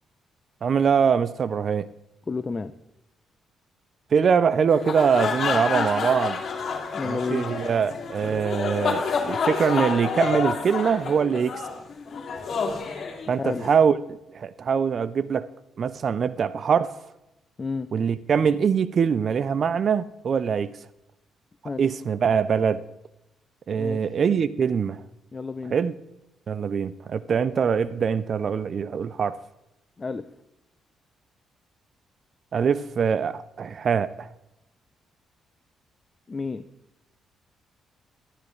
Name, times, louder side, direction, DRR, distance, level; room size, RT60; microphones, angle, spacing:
voice 1, 0.6-1.9 4.1-6.4 7.0-11.6 13.3-14.0 14.3-15.5 15.8-16.9 17.9-20.7 21.8-22.8 23.7-25.0 25.7-25.9 26.5-29.4 32.5-34.3, right 6 dB, 50° right, 0.4 m, -23 dB
voice 2, 2.3-2.7 6.9-7.5 13.4-13.7 17.6-17.9 21.6-21.8 23.7-24.0 25.3-25.7 30.0-30.3 36.3-36.6, left 4 dB, 30° left, 0.5 m, -30 dB
sound 1, 4.7-13.7, left 5 dB, 55° left, 2.3 m, -29 dB
12.5 x 10.5 x 3.2 m
cardioid pair, 90°, 0 cm